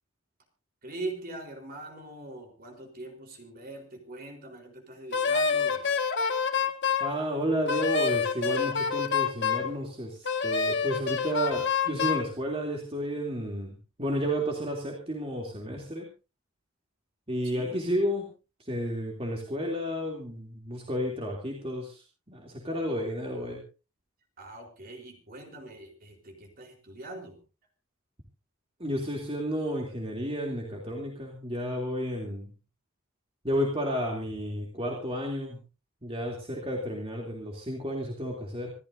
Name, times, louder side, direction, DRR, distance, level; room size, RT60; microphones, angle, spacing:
voice 1, 0.8-5.8 17.4-17.8 24.4-27.4, right 2 dB, 40° right, 3 dB, 4.1 m, -42 dB
Wind instrument woodwind instrument, 5.1-7.1 7.7-9.7 10.2-12.3, left 6 dB, 50° left, 1.8 m, -27 dB
voice 2, 7.0-16.1 17.3-18.3 18.6-23.6 28.8-32.5 33.4-35.6 36.0-38.7, equal, 25° right, -1 dB, 3.0 m, -32 dB
26.5 x 13.5 x 2.7 m, 0.33 s
head